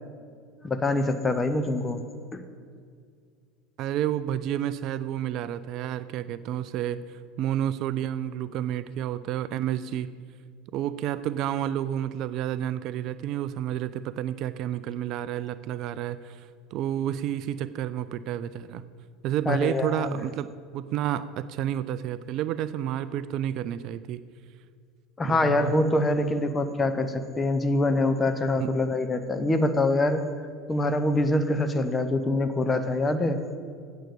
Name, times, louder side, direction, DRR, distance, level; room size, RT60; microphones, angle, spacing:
voice 1, 0.6-2.0 2.3-2.4 19.5-20.2 25.2-30.2 30.7-33.4, left 2 dB, 20° left, 8 dB, 0.9 m, -25 dB
voice 2, 3.8-10.1 10.7-18.8 19.2-24.2 25.2-25.7 28.6-28.7, right 11 dB, 50° right, 14 dB, 0.3 m, -30 dB
8.9 x 7.1 x 6.9 m, 2.1 s
figure-of-eight pair, 75°, 0 cm